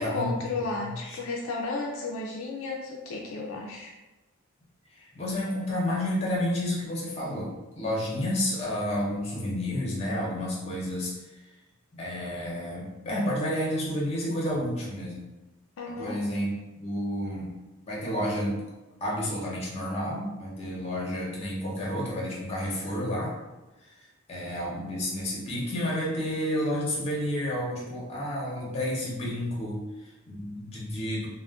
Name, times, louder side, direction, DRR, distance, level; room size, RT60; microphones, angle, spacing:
voice 1, 0.0-3.9 15.8-16.2, left 3 dB, 70° left, -1 dB, 0.4 m, -33 dB
voice 2, 0.7-1.2 4.9-11.4 11.9-15.3 15.9-17.5 17.9-18.6 19.0-23.3 23.8-31.3, left 1 dB, 30° left, -5 dB, 0.7 m, -31 dB
2.3 x 2.1 x 3.4 m, 1.1 s
head